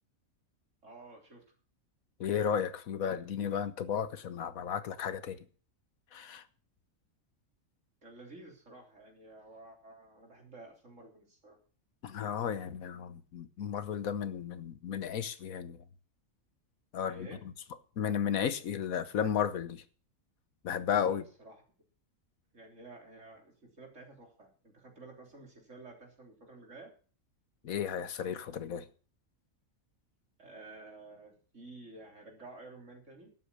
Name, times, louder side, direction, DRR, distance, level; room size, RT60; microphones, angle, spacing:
voice 1, 0.8-1.4 8.0-11.6 17.1-17.4 21.0-21.6 22.5-26.9 30.4-33.3, right 2 dB, 60° right, 3.8 m, -52 dB
voice 2, 2.2-5.4 6.1-6.4 12.0-15.8 16.9-17.3 18.0-19.8 20.6-21.2 27.6-28.9, left 8 dB, 90° left, 1.4 m, -33 dB
12.0 x 8.2 x 6.8 m
omnidirectional pair, 1.4 m